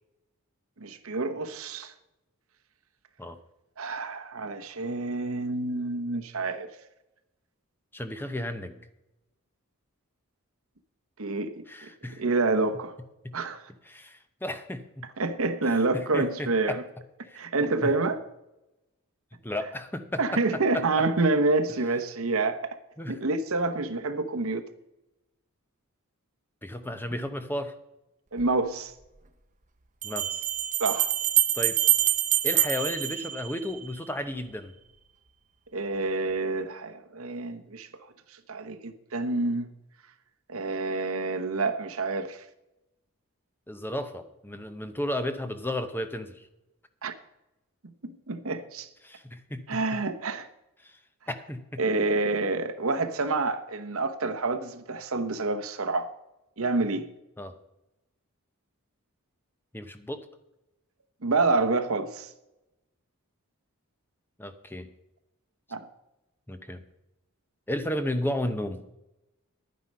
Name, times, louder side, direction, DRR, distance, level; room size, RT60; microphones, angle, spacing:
voice 1, 0.8-1.9 3.8-6.7 11.2-11.6 12.2-12.9 13.3-13.6 15.2-16.8 17.3-18.2 20.2-22.8 23.1-24.6 28.3-28.9 30.8-31.1 35.7-37.9 38.5-39.7 40.5-42.4 47.0-47.1 48.0-48.9 49.7-50.5 51.8-56.1 56.6-57.1 61.2-62.3 65.7-65.8, right 3 dB, 70° right, 1.0 m, -28 dB
voice 2, 7.9-8.8 11.7-12.2 13.2-13.4 13.9-15.1 15.9-16.8 17.2-17.4 17.8-17.9 19.4-20.8 23.0-23.2 26.6-27.8 30.0-30.5 31.5-31.8 32.4-34.7 43.7-46.5 49.0-50.0 50.8-51.0 51.3-51.8 57.4-57.5 59.7-60.3 64.4-64.9 66.5-66.8 67.7-68.8, left 1 dB, 10° left, 0.7 m, -33 dB
Bell, 28.4-28.5 30.0-33.9, right 12 dB, 35° right, 0.9 m, -25 dB
11.5 x 9.6 x 5.4 m
head